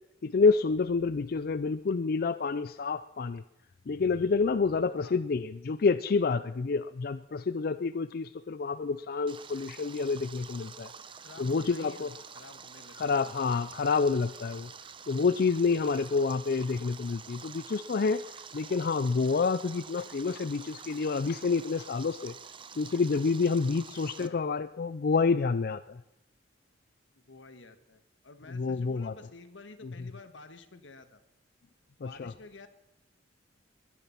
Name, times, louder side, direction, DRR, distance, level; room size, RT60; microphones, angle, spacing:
voice 1, 0.2-3.4 3.9-10.9 11.4-12.1 13.0-14.7 15.1-22.3 22.8-26.0 28.5-29.1 29.8-29.9 32.0-32.3, left 4 dB, 55° left, 13 dB, 0.4 m, -28 dB
Stream, 9.3-24.3, right 6 dB, 25° right, 0.7 m, -48 dB
voice 2, 11.2-12.1 12.3-13.2 24.1-24.4 27.1-31.2 32.0-32.7, left 3 dB, 90° left, 9 dB, 1.6 m, -51 dB
21.5 x 10.0 x 5.8 m, 0.89 s
head